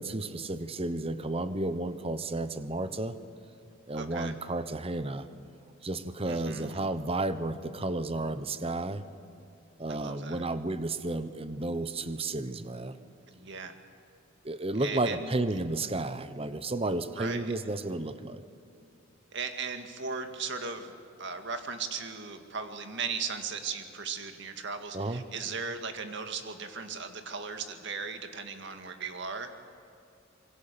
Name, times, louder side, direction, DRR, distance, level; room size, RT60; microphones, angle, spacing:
voice 1, 0.0-3.2 3.9-5.3 5.8-9.0 9.8-13.0 14.4-18.4 24.9-25.2, right 2 dB, 30° right, 12 dB, 1.0 m, -32 dB
voice 2, 3.9-4.4 6.3-6.8 9.9-10.4 13.3-13.9 14.8-15.3 17.2-17.5 19.3-29.5, right 5 dB, 60° right, 7 dB, 2.0 m, -37 dB
26.0 x 23.0 x 6.9 m, 2.6 s
head